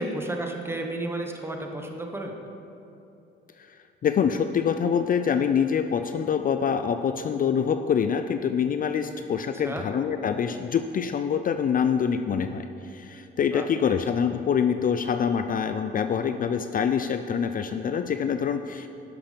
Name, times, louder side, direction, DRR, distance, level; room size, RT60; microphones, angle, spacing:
voice 1, 0.0-2.3 9.5-9.9 13.5-14.0, right 1 dB, 10° right, 3 dB, 1.2 m, -32 dB
voice 2, 4.0-12.7 12.9-18.9, left 7 dB, 45° left, 8 dB, 0.4 m, -25 dB
12.0 x 5.9 x 5.1 m, 2.8 s
cardioid pair, 90°, 20 cm